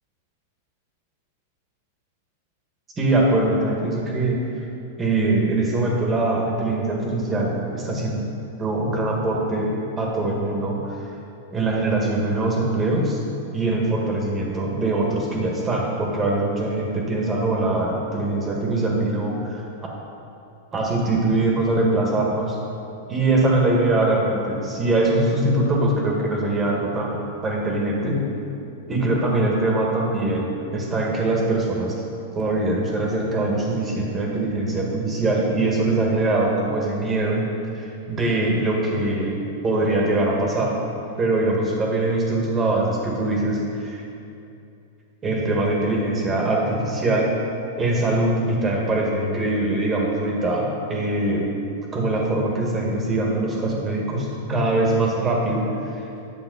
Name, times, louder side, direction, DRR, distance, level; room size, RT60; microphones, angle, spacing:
voice 1, 3.0-4.4 5.0-8.2 8.6-10.8 11.5-13.2 13.5-19.6 20.7-22.5 23.1-28.2 28.9-31.9 32.4-37.4 37.7-40.7 41.2-44.0 45.2-47.3 47.8-51.4 51.9-56.0, right 2 dB, 20° right, -1 dB, 1.7 m, -22 dB
9.5 x 6.8 x 4.0 m, 2.6 s
hypercardioid pair, 125°, 0 cm